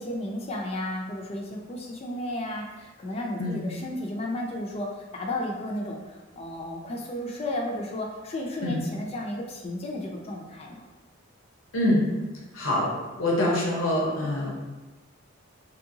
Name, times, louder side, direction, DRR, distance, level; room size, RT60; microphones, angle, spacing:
voice 1, 0.0-10.9, left 1 dB, 30° left, 0 dB, 0.3 m, -33 dB
voice 2, 11.7-12.1 12.5-12.9 13.2-14.5, left 1 dB, 90° left, -4 dB, 0.7 m, -25 dB
3.0 x 2.7 x 2.6 m, 1.1 s
head